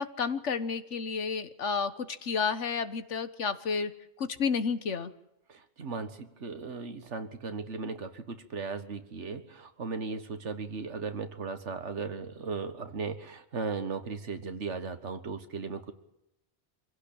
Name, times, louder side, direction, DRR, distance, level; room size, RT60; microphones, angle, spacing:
voice 1, 0.0-3.9 4.2-5.1, left 5 dB, 90° left, 12 dB, 1.6 m, -31 dB
voice 2, 5.5-15.9, right 4 dB, 80° right, 9 dB, 1.9 m, -37 dB
25.5 x 16.5 x 8.8 m, 0.85 s
omnidirectional pair, 1.2 m